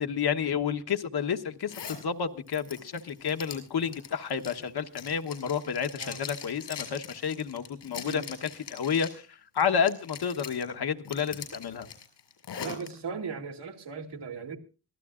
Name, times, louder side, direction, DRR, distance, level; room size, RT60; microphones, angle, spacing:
voice 1, 0.0-11.9, left 7 dB, 65° left, 7 dB, 1.2 m, -30 dB
Zipper (clothing), 1.7-2.0 2.5-9.2 9.6-10.6 11.0-12.9, left 7 dB, 90° left, 6.3 m, -42 dB
voice 2, 12.6-14.6, right 5 dB, 80° right, 2 dB, 2.6 m, -38 dB
24.5 x 15.0 x 2.5 m, 0.36 s
cardioid pair, 85°, 41 cm